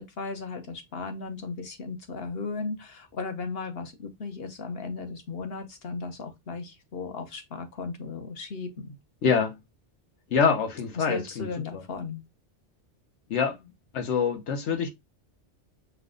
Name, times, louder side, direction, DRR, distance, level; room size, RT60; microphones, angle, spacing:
voice 1, 0.0-9.0 10.9-12.2, left 4 dB, 60° left, 1.1 m, -36 dB
voice 2, 9.2-9.6 10.3-11.5 13.3-13.6 13.9-14.9, left 6 dB, 85° left, 1.2 m, -25 dB
5.7 x 2.3 x 3.7 m
omnidirectional pair, 1.2 m